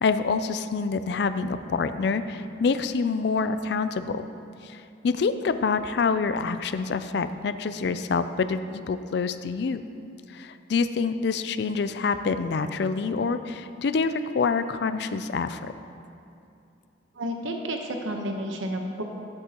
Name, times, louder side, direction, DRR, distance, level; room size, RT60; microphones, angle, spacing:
voice 1, 0.0-4.3 4.6-9.8 10.3-15.7, left 4 dB, 60° left, 11 dB, 0.4 m, -26 dB
voice 2, 17.1-19.0, equal, 85° right, 3 dB, 1.0 m, -31 dB
14.5 x 8.2 x 2.9 m, 2.7 s
head